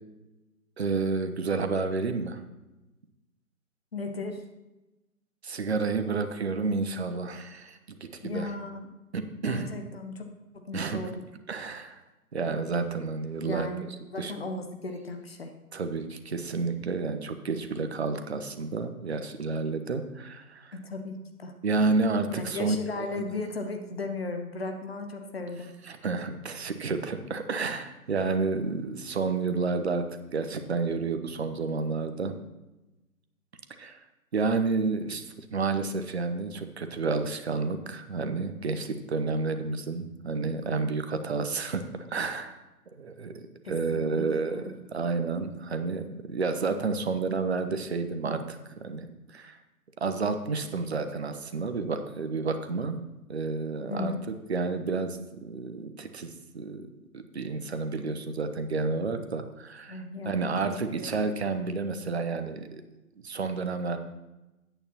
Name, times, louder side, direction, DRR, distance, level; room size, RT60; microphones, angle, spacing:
voice 1, 0.8-2.4 5.4-8.5 9.1-9.7 10.7-11.0 11.5-12.0 12.3-13.7 14.2-14.3 15.7-20.8 21.6-22.8 23.1-23.3 25.8-30.0 30.3-32.3 33.8-34.0 34.3-42.6 43.0-43.4 43.7-49.6 50.0-53.0 53.3-54.1 54.5-62.8 63.2-64.0, right 4 dB, 45° right, 8 dB, 0.9 m, -30 dB
voice 2, 3.9-4.4 8.2-8.9 9.4-10.3 10.5-11.1 13.4-15.5 20.7-21.5 22.3-25.7 43.6-44.2 44.5-44.7 53.9-54.2 59.9-60.7 60.9-61.1, left 3 dB, 40° left, 5 dB, 1.0 m, -36 dB
13.5 x 9.1 x 2.9 m, 1.0 s
figure-of-eight pair, 140°, 45 cm